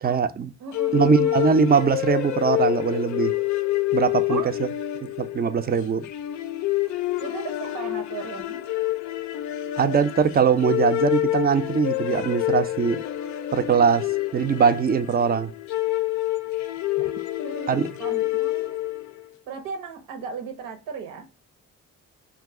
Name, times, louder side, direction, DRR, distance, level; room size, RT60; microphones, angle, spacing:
voice 1, 0.0-0.5 0.9-3.3 3.9-4.7 5.2-6.1 9.8-13.0 13.5-15.5 17.7-17.8, right 6 dB, 30° right, 0.4 m, -21 dB
voice 2, 0.6-1.4 4.3-4.6 7.2-8.6 17.0-17.1 17.4-18.9 19.5-21.3, right 5 dB, 90° right, 0.9 m, -36 dB
sound 1, 0.7-19.2, left 15 dB, 65° left, 0.4 m, -27 dB
2.6 x 2.3 x 3.5 m
supercardioid pair, 65°, 32 cm